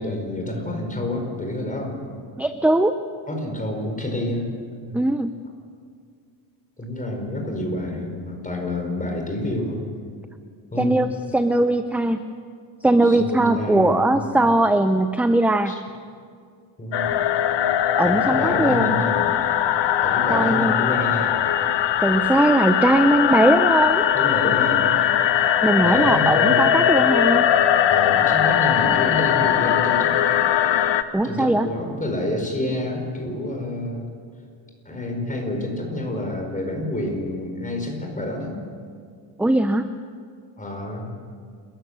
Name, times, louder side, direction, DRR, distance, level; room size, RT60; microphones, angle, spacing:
voice 1, 0.0-2.0 3.3-4.5 4.8-4.9 6.8-9.8 10.7-11.0 13.0-14.4 15.7-15.8 16.8-17.2 18.0-19.4 20.0-21.5 24.1-25.1 25.8-26.8 27.9-30.3 31.2-34.1 34.8-38.5 40.6-41.1, left 1 dB, 15° left, 2 dB, 5.0 m, -28 dB
voice 2, 2.4-2.9 4.9-5.3 10.8-12.3 12.8-15.7 18.0-19.0 20.3-20.7 22.0-24.0 25.6-27.5 31.1-31.7 39.4-39.9, right 1 dB, 5° right, 9 dB, 0.6 m, -20 dB
sound 1, 16.9-31.0, left 10 dB, 65° left, 1.1 m, -20 dB
29.5 x 15.0 x 6.8 m, 2.1 s
cardioid pair, 125°, 47 cm